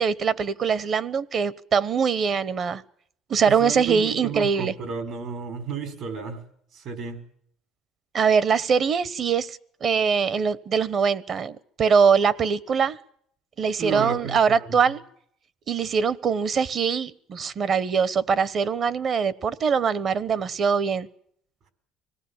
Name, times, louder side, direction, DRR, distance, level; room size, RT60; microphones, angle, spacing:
voice 1, 0.0-2.8 3.3-4.7 8.1-13.0 13.6-15.0 15.7-21.1, right 6 dB, 45° right, 1.0 m, -23 dB
voice 2, 3.5-6.4 6.7-7.2 13.8-14.7, right 5 dB, 65° right, 5.3 m, -32 dB
25.5 x 18.5 x 7.3 m
cardioid pair, 105°, 0 cm